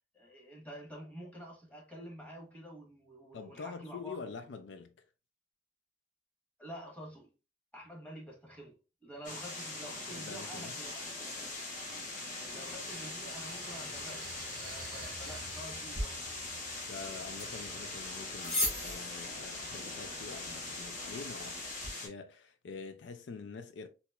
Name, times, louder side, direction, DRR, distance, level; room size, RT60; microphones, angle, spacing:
voice 1, 0.1-4.2 6.6-7.3 7.7-8.8 9.0-11.0 11.8-14.3 14.6-16.2, equal, 10° left, 1.2 m, -48 dB
voice 2, 3.3-4.9 10.1-10.8 16.9-23.9, left 5 dB, 75° left, 0.4 m, -46 dB
sound 1, 9.2-22.1, left 2 dB, 45° left, 1.1 m, -42 dB
sound 2, 10.9-21.3, right 3 dB, 50° right, 0.6 m, -54 dB
sound 3, 15.9-21.9, left 1 dB, 30° left, 1.6 m, -40 dB
4.0 x 2.9 x 2.2 m
head